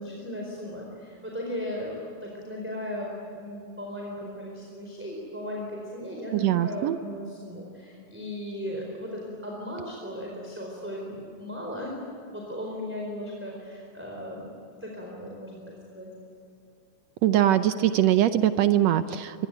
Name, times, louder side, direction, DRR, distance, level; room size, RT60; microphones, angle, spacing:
voice 1, 0.0-11.9 12.3-16.1, equal, 5° right, -2 dB, 4.2 m, -37 dB
voice 2, 6.3-7.0 17.2-19.5, right 12 dB, 70° right, 11 dB, 1.7 m, -22 dB
26.5 x 22.5 x 9.3 m, 2.6 s
omnidirectional pair, 3.5 m